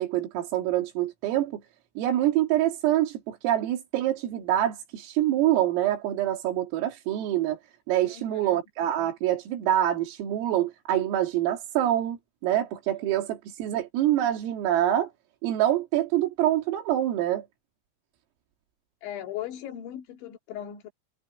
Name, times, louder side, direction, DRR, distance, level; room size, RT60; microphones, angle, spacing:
voice 1, 0.0-1.6 2.0-7.6 7.9-15.1 15.4-17.5, right 12 dB, 85° right, 5.3 m, -26 dB
voice 2, 8.1-8.6 19.0-20.9, left 11 dB, 65° left, 4.8 m, -38 dB
omnidirectional pair, 5.8 m